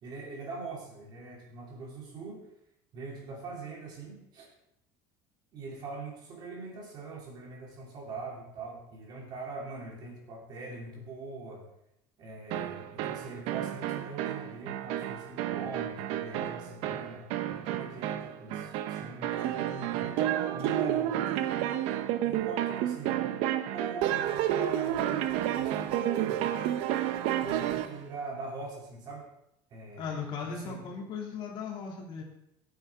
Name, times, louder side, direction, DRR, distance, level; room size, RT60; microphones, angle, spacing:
voice 1, 0.0-2.4 2.9-4.5 5.5-11.7 12.2-20.2 20.5-21.2 22.2-23.2 23.7-26.4 27.4-29.3 29.7-30.8, right 3 dB, 40° right, -1 dB, 3.0 m, -42 dB
sound 1, 12.5-28.0, right 12 dB, 65° right, 0.7 m, -31 dB
voice 2, 30.0-32.2, left 5 dB, 45° left, -1 dB, 2.4 m, -37 dB
14.5 x 8.9 x 3.6 m, 0.81 s
cardioid pair, 155°, 11 cm